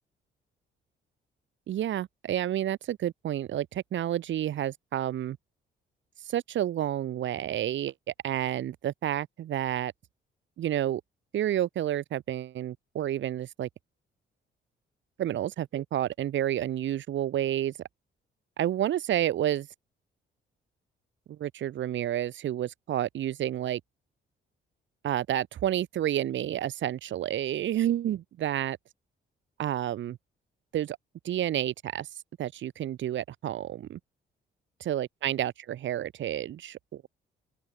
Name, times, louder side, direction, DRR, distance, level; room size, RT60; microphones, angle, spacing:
voice 1, 1.7-5.4 6.2-7.9 8.2-9.9 10.6-11.0 11.3-13.7 15.2-17.7 18.6-19.7 21.3-23.8 25.0-28.8 29.6-30.2 30.7-31.0 31.2-32.1 32.4-34.0 34.8-37.1, right 12 dB, 70° right, 1.8 m, -30 dB
open air
cardioid pair, 90°, 20 cm